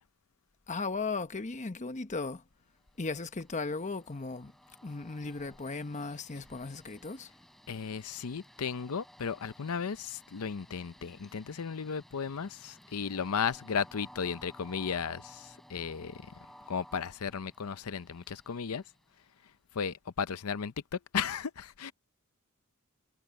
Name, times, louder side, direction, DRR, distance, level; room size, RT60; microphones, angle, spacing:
voice 1, 0.7-2.4 3.0-4.5 4.8-7.3, left 3 dB, 35° left, 1.0 m, -36 dB
Train, 2.8-19.5, equal, ahead, 3.7 m, -57 dB
voice 2, 7.7-16.2 16.7-18.8 19.7-20.7 21.1-21.9, left 6 dB, 85° left, 0.6 m, -35 dB
head